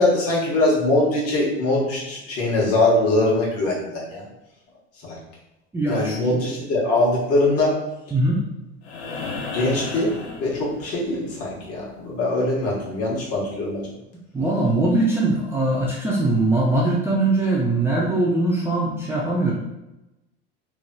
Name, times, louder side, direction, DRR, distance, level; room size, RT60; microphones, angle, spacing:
voice 1, 0.0-4.2 5.0-5.2 5.9-7.8 9.0-10.1 10.4-13.9, left 2 dB, 45° left, -4 dB, 1.3 m, -22 dB
voice 2, 5.7-6.4 8.1-8.4 14.3-19.5, right 2 dB, 10° right, -6 dB, 0.4 m, -21 dB
sound 1, 8.8-11.1 13.0-13.1, left 4 dB, 75° left, 0.8 m, -33 dB
3.1 x 2.5 x 2.2 m, 0.94 s
hypercardioid pair, 95°, 32 cm